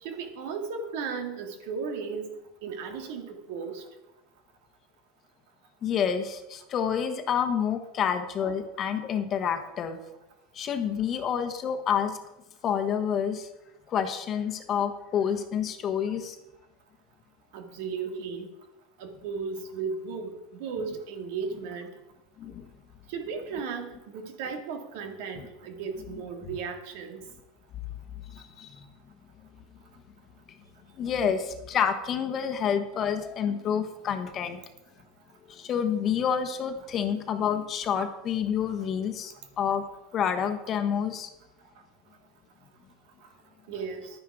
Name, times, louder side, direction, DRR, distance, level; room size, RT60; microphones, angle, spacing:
voice 1, 0.0-2.4 2.6-3.8 17.5-18.5 19.0-21.9 23.1-27.2 43.7-44.1, right 5 dB, 70° right, 5 dB, 2.1 m, -35 dB
voice 2, 5.8-10.0 10.5-12.2 12.6-13.5 13.9-16.4 22.4-22.7 28.3-28.8 31.0-34.6 35.5-39.8 40.1-41.3, left 8 dB, 30° left, 7 dB, 1.3 m, -28 dB
11.0 x 9.8 x 4.9 m, 0.95 s
supercardioid pair, 145°, 0 cm